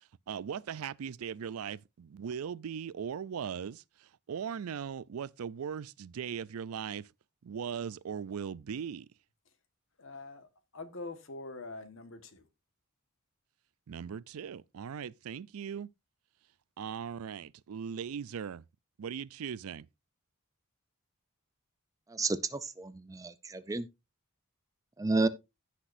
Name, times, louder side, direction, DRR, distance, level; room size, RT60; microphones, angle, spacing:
voice 1, 0.3-7.1 7.4-9.1 13.9-15.9 16.8-18.6 19.0-19.9, right 7 dB, 85° right, 0.4 m, -39 dB
voice 2, 10.0-12.5, left 3 dB, 65° left, 1.5 m, -44 dB
voice 3, 22.1-23.9 25.0-25.3, right 3 dB, 15° right, 0.5 m, -31 dB
16.0 x 6.0 x 2.6 m
head